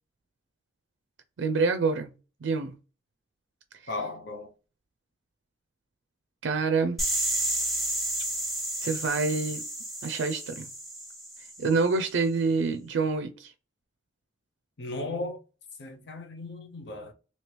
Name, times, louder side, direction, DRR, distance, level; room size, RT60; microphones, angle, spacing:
voice 1, 1.4-2.1 2.4-2.7 6.4-7.0 8.8-9.6 10.0-10.7 11.6-13.5, right 4 dB, 70° right, 0.4 m, -26 dB
voice 2, 3.9-4.5 14.8-15.4 15.8-17.1, left 2 dB, 70° left, 0.7 m, -36 dB
sound 1, 7.0-11.8, right 1 dB, ahead, 0.8 m, -31 dB
3.0 x 2.7 x 3.2 m
head